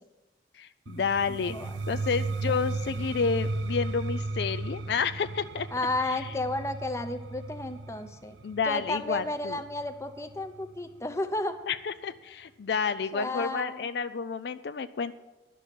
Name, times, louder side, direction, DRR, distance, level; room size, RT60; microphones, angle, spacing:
voice 1, 0.5-1.6 1.9-5.7 6.0-6.4 8.4-9.6 11.7-15.1, left 5 dB, 60° left, 11 dB, 0.4 m, -30 dB
sound 1, 0.9-10.6, right 3 dB, 80° right, 0.6 m, -35 dB
voice 2, 1.3-1.7 5.7-8.4 8.7-11.6 13.1-13.9, left 2 dB, 15° left, 8 dB, 0.7 m, -32 dB
11.5 x 6.2 x 8.2 m, 1.1 s
head